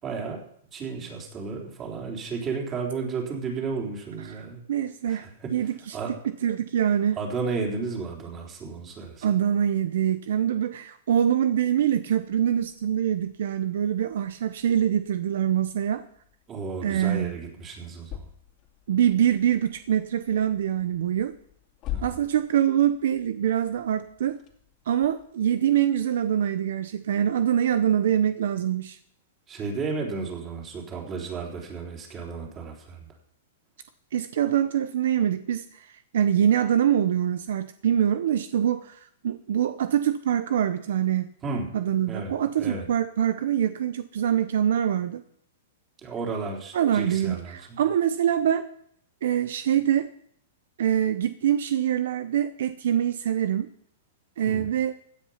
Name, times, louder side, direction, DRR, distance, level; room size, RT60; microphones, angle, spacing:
voice 1, 0.0-0.4 0.7-4.6 5.1-6.1 7.1-9.3 16.5-18.3 21.9-22.1 29.5-33.1 41.4-41.7 42.1-42.9 46.0-47.8 54.4-54.7, right 4 dB, 25° right, 0 dB, 3.9 m, -33 dB
voice 2, 4.7-6.0 6.2-7.2 9.2-16.1 16.8-17.3 18.9-21.3 22.0-24.4 24.9-29.0 34.1-39.0 39.2-41.3 41.7-45.2 46.7-48.7 49.2-50.1 50.8-53.7 54.4-54.9, right 10 dB, 70° right, 11 dB, 0.8 m, -24 dB
sound 1, 12.1-25.3, left 13 dB, 35° left, 2.4 m, -45 dB
16.5 x 9.4 x 5.8 m, 0.66 s
hypercardioid pair, 140°, 0 cm